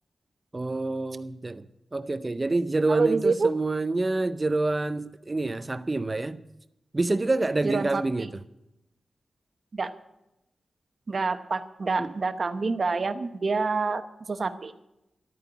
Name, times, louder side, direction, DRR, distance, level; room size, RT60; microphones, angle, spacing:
voice 1, 0.5-1.7 1.9-6.4 6.9-8.4 12.0-12.1, right 2 dB, 20° right, 0.5 m, -27 dB
voice 2, 2.9-3.5 7.6-8.3 9.7-9.9 11.1-14.0 14.3-14.7, right 4 dB, 40° right, 0.9 m, -27 dB
12.5 x 9.1 x 8.9 m
wide cardioid pair, 150°, 0 cm